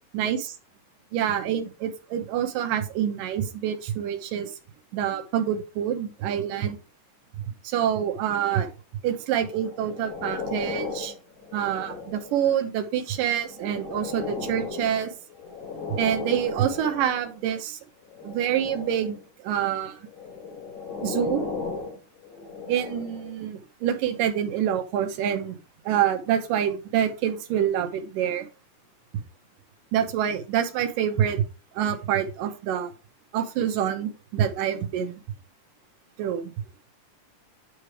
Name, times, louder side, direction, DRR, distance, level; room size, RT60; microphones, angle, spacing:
voice 1, 0.1-0.6 1.1-4.5 4.9-6.8 7.6-8.7 9.0-11.1 11.5-15.1 16.0-17.8 18.2-20.0 21.0-21.4 22.7-25.6 25.9-28.5 29.9-31.4 31.8-32.9 33.3-35.2 36.2-36.5, right 9 dB, 85° right, 7 dB, 2.6 m, -26 dB
sound 1, 9.4-12.5 13.1-17.3 18.1-19.2 20.1-23.4 24.1-24.2, left 5 dB, 85° left, 5.8 m, -36 dB
9.8 x 3.3 x 4.7 m, 0.33 s
omnidirectional pair, 3.8 m